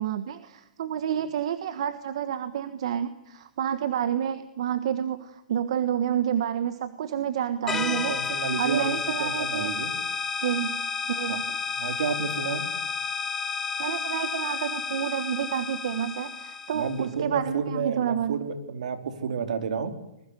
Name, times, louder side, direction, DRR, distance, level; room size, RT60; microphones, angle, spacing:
voice 1, 0.0-8.1 8.6-9.7 10.4-11.4 13.8-18.4, right 9 dB, 45° right, 11 dB, 1.4 m, -29 dB
sound 1, 7.7-17.1, left 6 dB, 10° left, 1.2 m, -31 dB
voice 2, 7.7-8.8 9.2-9.9 11.3-11.4 11.8-12.6 16.7-19.9, right 6 dB, 65° right, 7 dB, 3.8 m, -30 dB
25.5 x 21.5 x 9.9 m, 0.84 s
hypercardioid pair, 180°, 4 cm